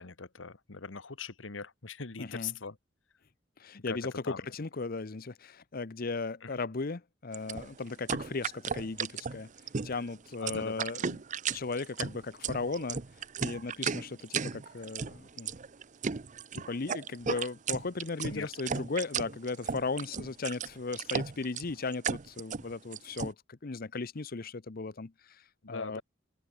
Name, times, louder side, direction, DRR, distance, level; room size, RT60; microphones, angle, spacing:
voice 1, 0.0-2.8 3.9-4.0 4.3-4.4 6.5-6.6 10.4-10.8 18.3-18.5 25.6-26.0, left 5 dB, 85° left, 1.3 m, -40 dB
voice 2, 2.2-2.5 3.6-9.5 9.8-11.2 11.5-13.0 13.4-15.5 16.5-26.0, left 3 dB, 50° left, 0.8 m, -36 dB
sound 1, 7.3-23.3, right 6 dB, 40° right, 0.6 m, -35 dB
open air
head